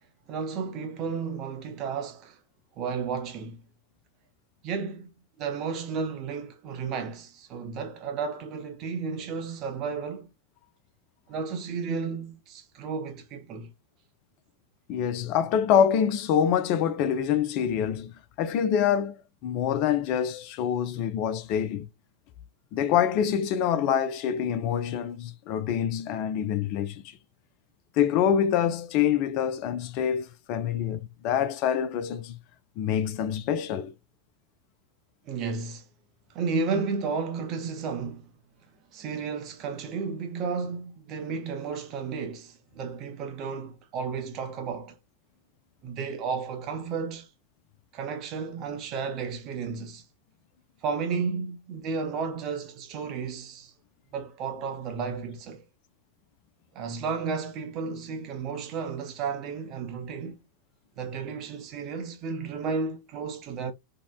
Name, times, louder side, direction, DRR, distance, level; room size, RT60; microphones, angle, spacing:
voice 1, 0.3-2.4 2.8-3.6 4.6-10.3 11.3-13.7 35.3-35.8 36.3-38.3 38.9-45.0 45.8-47.3 47.9-50.0 50.8-53.7 54.1-55.6 56.7-60.4 61.0-63.7, right 5 dB, 35° right, 0.6 m, -33 dB
voice 2, 14.9-18.1 18.4-21.9 22.7-27.0 28.0-32.4 32.8-33.9, left 9 dB, 40° left, 0.4 m, -26 dB
2.7 x 2.0 x 2.2 m
figure-of-eight pair, 90°, 0 cm